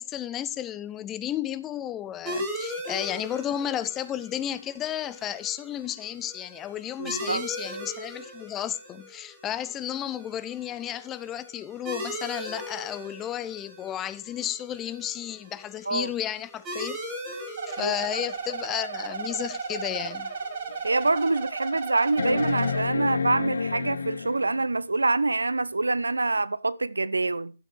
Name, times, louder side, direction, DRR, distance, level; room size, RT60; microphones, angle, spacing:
voice 1, 0.0-17.0 17.7-20.3, left 11 dB, 15° left, 0.6 m, -33 dB
sound 1, 2.2-21.4, equal, 15° right, 2.9 m, -40 dB
voice 2, 7.0-7.4 15.9-16.1 17.8-17.9 20.8-27.5, right 3 dB, 85° right, 0.7 m, -25 dB
sound 2, 17.6-22.8, right 5 dB, 45° right, 1.7 m, -34 dB
sound 3, 20.0-20.1 20.7-20.8 22.2-24.7 26.4-26.5, left 5 dB, 70° left, 0.9 m, -29 dB
12.0 x 7.6 x 4.6 m
figure-of-eight pair, 145°, 0 cm